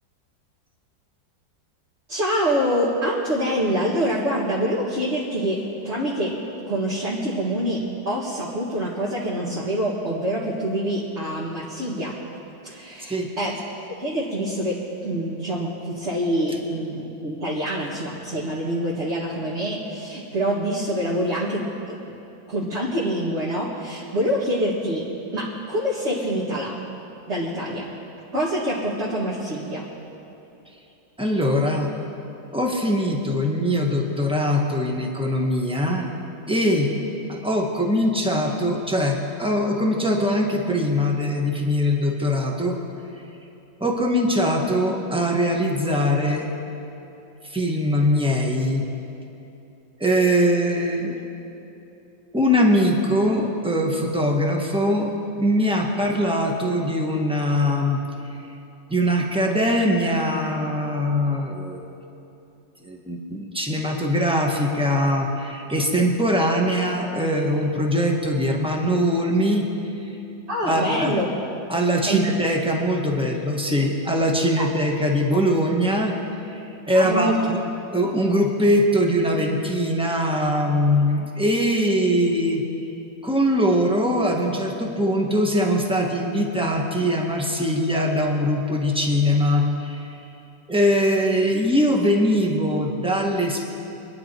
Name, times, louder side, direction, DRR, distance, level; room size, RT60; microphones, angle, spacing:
voice 1, 2.1-6.4 6.7-12.2 12.6-13.6 13.9-21.9 22.5-26.8 27.3-27.9 28.3-29.9 70.5-71.3 72.0-72.2 74.6-74.7 76.9-77.4, equal, 35° right, -6 dB, 2.2 m, -26 dB
voice 2, 31.2-31.9 32.5-36.1 36.5-36.9 37.3-42.8 43.8-46.5 47.5-48.8 50.0-51.2 52.3-58.0 58.2-58.3 58.9-61.8 62.8-69.7 70.1-70.2 70.6-71.2 71.7-76.1 76.5-77.6 77.9-82.6 83.2-90.1 90.7-93.7, equal, 5° right, 0 dB, 1.3 m, -22 dB
25.0 x 10.5 x 4.5 m, 2.9 s
omnidirectional pair, 2.0 m